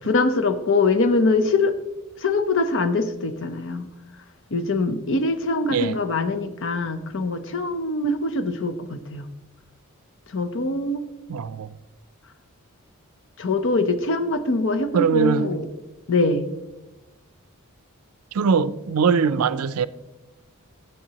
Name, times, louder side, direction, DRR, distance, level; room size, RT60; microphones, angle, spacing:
voice 1, 0.1-1.7 2.2-3.9 4.5-9.2 10.3-11.0 13.4-15.7 16.1-16.5, left 3 dB, 60° left, 0.7 m, -23 dB
voice 2, 11.3-11.7 14.9-15.5 18.3-19.9, right 5 dB, 75° right, 0.4 m, -21 dB
12.5 x 7.9 x 2.9 m
head